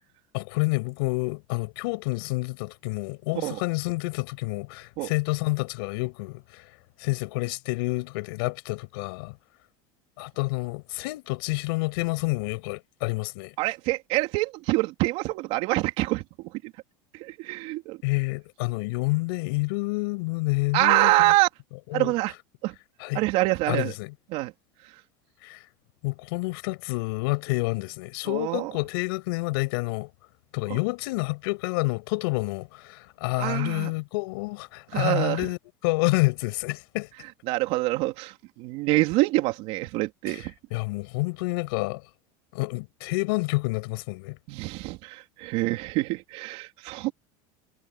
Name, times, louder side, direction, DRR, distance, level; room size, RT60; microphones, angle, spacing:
voice 1, 0.3-6.7 7.0-9.4 10.2-13.5 18.0-21.3 21.9-22.1 23.0-23.2 23.7-24.1 25.4-25.6 26.0-30.1 30.5-37.1 40.3-42.0 42.5-44.4, left 25 dB, 80° left, 6.8 m, -28 dB
voice 2, 13.6-16.2 16.6-16.7 17.1-18.0 20.7-21.5 21.9-22.3 22.6-22.8 23.1-23.9 24.3-24.5 28.3-28.7 30.7-30.8 33.4-33.9 34.9-35.4 37.5-40.5 44.5-47.1, right 20 dB, 60° right, 3.7 m, -25 dB
supercardioid pair, 140°, 12 cm